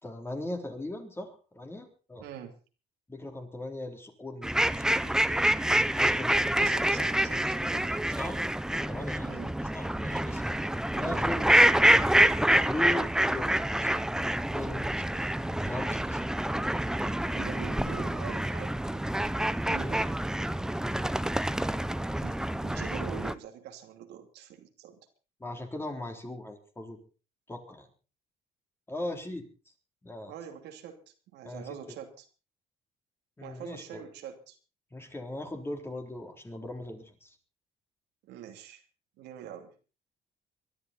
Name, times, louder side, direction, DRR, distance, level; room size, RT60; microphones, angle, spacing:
voice 1, 0.0-2.2 3.1-5.1 5.9-6.3 8.1-8.4 8.9-10.4 11.0-11.5 12.7-13.5 13.8-13.9 14.5-14.9 15.5-16.3 25.4-27.0 27.5-27.9 28.9-29.5 30.0-30.3 31.4-31.7 33.4-34.0 34.9-37.4, left 1 dB, 15° left, 4 dB, 3.7 m, -39 dB
voice 2, 2.2-2.6 6.6-8.0 9.2-9.5 10.9-11.2 15.2-15.3 17.3-19.1 19.6-20.1 22.2-25.0 30.3-32.3 33.4-34.6 38.2-38.8 39.2-39.7, right 9 dB, 85° right, 5 dB, 2.7 m, -44 dB
sound 1, 4.4-23.3, right 1 dB, 5° right, 0.7 m, -27 dB
23.5 x 12.0 x 4.1 m, 0.34 s
cardioid pair, 110°, 17 cm